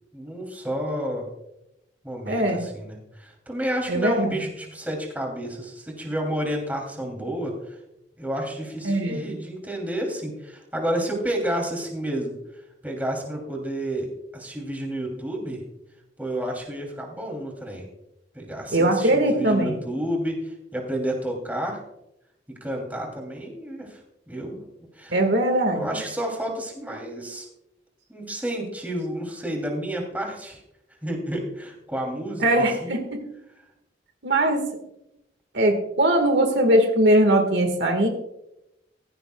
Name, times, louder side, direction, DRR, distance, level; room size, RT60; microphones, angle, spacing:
voice 1, 0.1-1.3 2.0-7.8 8.2-12.3 12.8-15.6 16.2-17.9 18.3-21.8 22.6-24.0 24.3-24.7 24.9-25.1 25.7-27.5 28.1-30.6 31.0-32.9, right 1 dB, 10° right, 0 dB, 2.9 m, -30 dB
voice 2, 2.2-2.6 3.9-4.5 8.8-9.2 18.7-19.7 25.1-25.9 32.4-33.2 34.2-34.6 35.5-38.1, right 1 dB, 65° right, 4 dB, 1.7 m, -20 dB
16.0 x 15.0 x 2.3 m, 0.87 s
head